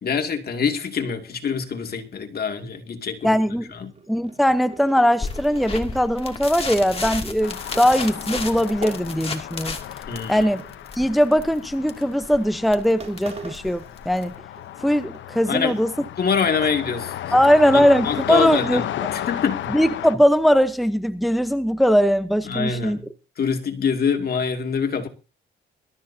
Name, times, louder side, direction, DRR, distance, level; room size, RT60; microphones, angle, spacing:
voice 1, 0.0-3.4 3.8-3.9 10.1-10.5 15.5-15.8 16.2-17.4 17.7-18.8 19.1-19.7 22.5-23.1 23.4-25.1, left 6 dB, 50° left, 2.5 m, -25 dB
voice 2, 3.2-3.7 4.1-9.8 10.3-10.6 10.9-14.3 14.8-15.9 17.3-19.1 19.7-23.0, equal, ahead, 0.9 m, -20 dB
sound 1, 3.6-9.7 10.0-11.5 12.1-12.3 12.7-12.8 13.0-14.7 15.0-16.2 16.5-17.1 17.4-17.5 17.9-20.3, right 3 dB, 35° right, 4.1 m, -43 dB
sound 2, 5.2-14.4, left 4 dB, 30° left, 2.6 m, -33 dB
sound 3, 7.4-20.1, left 11 dB, 70° left, 0.9 m, -34 dB
22.5 x 13.0 x 2.8 m
cardioid pair, 90°, 20 cm